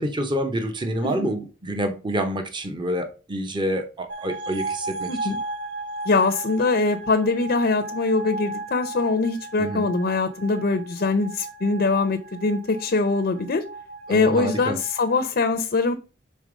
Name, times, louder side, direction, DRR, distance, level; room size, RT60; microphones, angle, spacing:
voice 1, 0.0-5.4 9.6-9.9 14.1-14.8, right 1 dB, 25° right, 0.8 m, -27 dB
sound 1, 4.1-15.2, right 2 dB, 55° right, 0.6 m, -36 dB
voice 2, 6.1-13.6 14.1-15.9, left 3 dB, 50° left, 0.5 m, -23 dB
5.2 x 3.9 x 5.0 m
head